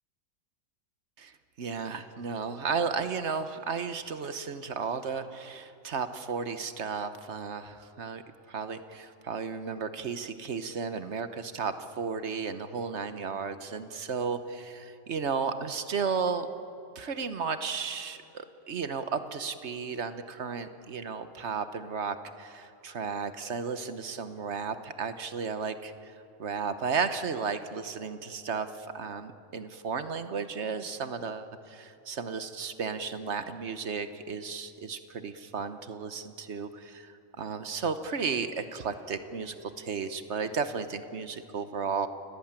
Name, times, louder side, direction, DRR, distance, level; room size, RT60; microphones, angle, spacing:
voice 1, 1.2-8.2 8.5-16.5 16.9-26.1 26.4-37.1 37.4-42.1, right 5 dB, 55° right, 10 dB, 1.3 m, -34 dB
29.5 x 17.5 x 8.9 m, 2.8 s
omnidirectional pair, 1.4 m